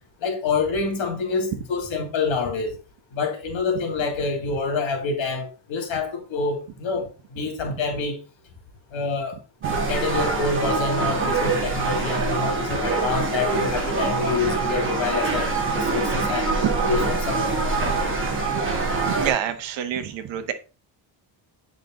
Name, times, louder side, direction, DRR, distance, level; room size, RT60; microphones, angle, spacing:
voice 1, 0.2-2.7 3.1-8.2 8.9-9.4 9.9-16.5 16.8-18.1, left 4 dB, 85° left, 2.7 m, -27 dB
sound 1, 9.6-19.3, right 3 dB, 25° right, 2.1 m, -24 dB
voice 2, 19.0-20.5, right 10 dB, 75° right, 1.2 m, -27 dB
8.3 x 5.3 x 3.8 m
cardioid pair, 165°, 45 cm